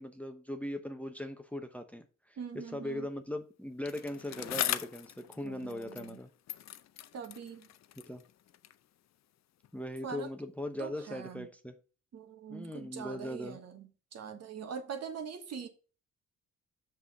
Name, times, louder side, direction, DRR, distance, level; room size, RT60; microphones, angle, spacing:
voice 1, 0.0-2.4 2.7-6.3 8.0-8.2 9.7-11.8 12.5-13.6, left 1 dB, 5° left, 0.9 m, -40 dB
voice 2, 2.4-3.1 5.4-6.2 7.1-7.7 10.0-10.3 10.8-11.5 12.1-15.7, right 6 dB, 55° right, 1.6 m, -43 dB
Bicycle, 3.8-6.2 6.5-8.9 9.6-9.7, left 12 dB, 60° left, 0.6 m, -39 dB
6.1 x 5.7 x 4.9 m
cardioid pair, 90°, 30 cm